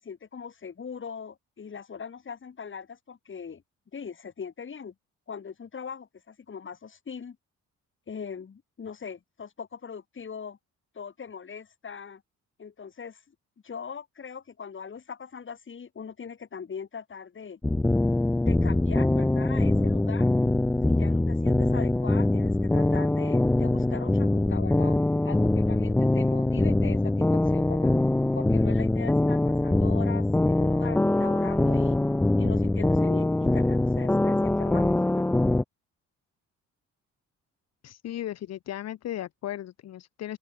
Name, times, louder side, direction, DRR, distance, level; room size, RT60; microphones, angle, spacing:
voice 1, 0.0-3.6 3.9-4.9 5.3-7.4 8.1-10.6 10.9-12.2 12.6-13.2 13.6-17.6 18.4-20.3 20.9-25.0 25.2-27.9 28.3-32.0 32.4-35.4, left 6 dB, 40° left, 4.7 m, -40 dB
sound 1, 17.6-35.6, left 2 dB, 5° left, 0.3 m, -23 dB
voice 2, 37.8-40.4, left 12 dB, 60° left, 0.8 m, -36 dB
open air
cardioid pair, 90°, 30 cm